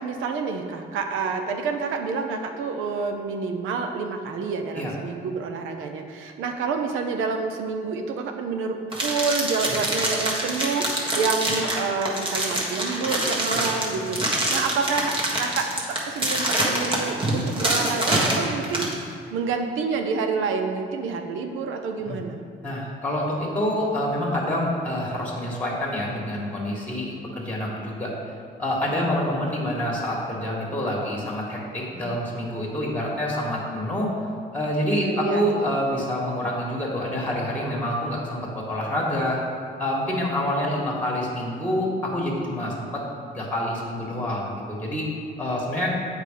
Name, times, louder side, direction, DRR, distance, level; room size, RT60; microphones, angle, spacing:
voice 1, 0.0-18.9 19.3-22.5 35.0-35.8, right 4 dB, 90° right, 5 dB, 0.7 m, -28 dB
sound 1, 8.9-18.9, right 1 dB, 25° right, 1.6 m, -25 dB
voice 2, 22.6-28.1 28.6-34.1 34.5-39.4 39.8-43.0 43.3-45.1 45.4-45.9, left 1 dB, 10° left, -3 dB, 1.8 m, -27 dB
7.7 x 4.9 x 5.2 m, 2.2 s
cardioid pair, 90°, 20 cm